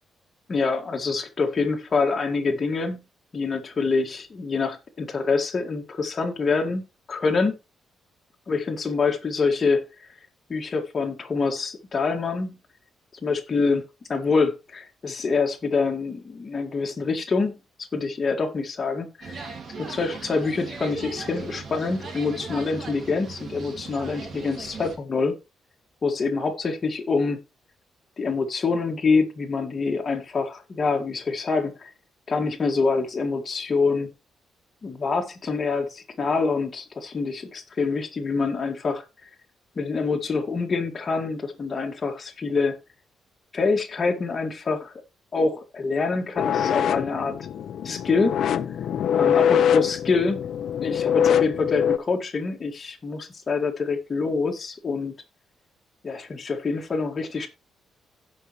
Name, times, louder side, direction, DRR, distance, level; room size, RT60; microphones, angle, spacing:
voice 1, 0.5-3.0 3.3-7.5 8.5-9.8 10.5-12.6 13.2-13.8 14.1-19.5 19.8-25.3 26.0-27.4 28.2-31.9 32.3-34.1 34.8-39.0 39.8-42.8 43.5-44.9 45.3-47.4 47.8-48.4 49.1-50.4 50.8-55.1 56.0-57.5, left 4 dB, 30° left, 2.0 m, -26 dB
sound 1, 19.2-25.0, right 4 dB, 45° right, 2.3 m, -38 dB
sound 2, 46.4-52.0, left 9 dB, 65° left, 0.7 m, -23 dB
16.5 x 5.6 x 3.2 m
cardioid pair, 145°, 0 cm